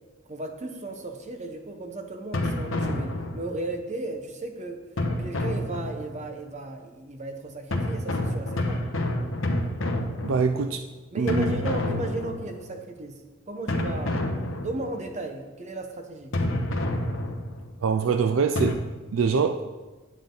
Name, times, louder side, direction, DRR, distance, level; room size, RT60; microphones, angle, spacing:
voice 1, 0.3-4.8 5.2-8.8 11.1-13.2 13.5-14.3 14.6-16.4, right 2 dB, 35° right, 4 dB, 1.1 m, -35 dB
sound 1, 2.3-3.7 5.0-6.3 7.7-10.8 11.3-12.8 13.7-15.1 16.3-17.7 18.6-18.7, left 1 dB, 70° left, 1.0 m, -28 dB
voice 2, 10.2-10.8 11.2-11.5 17.8-18.8 19.1-19.6, right 5 dB, 75° right, 8 dB, 0.4 m, -24 dB
9.3 x 8.7 x 3.9 m, 1.2 s
head